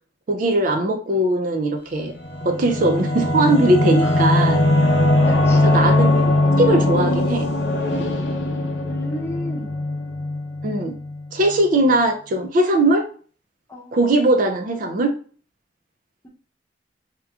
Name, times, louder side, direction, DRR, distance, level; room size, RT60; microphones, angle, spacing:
voice 1, 0.3-2.1 2.4-4.7 5.6-6.1 6.6-7.5 10.6-11.0 11.3-13.1 13.9-15.1, right 1 dB, 50° right, 5 dB, 0.4 m, -19 dB
Singing / Musical instrument, 2.0-11.2, left 1 dB, 75° left, 0.7 m, -20 dB
voice 2, 5.2-5.8 8.9-9.7 13.7-14.0, equal, 15° left, -2 dB, 0.7 m, -33 dB
3.4 x 2.9 x 2.3 m, 0.41 s
head